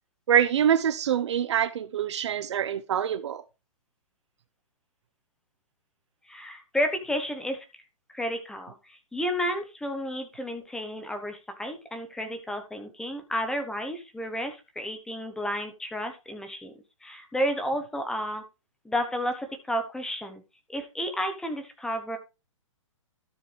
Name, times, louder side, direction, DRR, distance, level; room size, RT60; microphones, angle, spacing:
voice 1, 0.3-3.4, right 9 dB, 55° right, 0.9 m, -25 dB
voice 2, 6.3-7.6 8.1-16.7 17.0-18.4 18.8-20.4 20.7-22.2, equal, 5° left, 1.0 m, -31 dB
12.5 x 6.7 x 3.4 m
hypercardioid pair, 150°, 17 cm